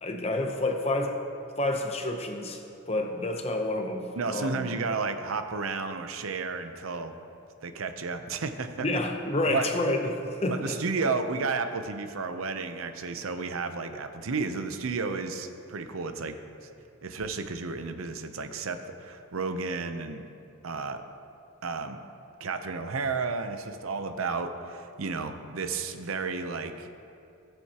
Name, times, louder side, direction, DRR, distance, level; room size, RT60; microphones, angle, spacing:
voice 1, 0.0-1.2 1.6-4.7 8.8-10.8, left 1 dB, 30° left, 4 dB, 0.8 m, -29 dB
voice 2, 4.2-7.1 7.6-8.9 9.5-9.7 10.5-16.3 16.6-16.7 17.0-20.3 20.6-21.0 21.6-22.0 22.4-26.9, right 4 dB, 90° right, 8 dB, 0.7 m, -32 dB
17.0 x 7.8 x 2.9 m, 2.6 s
head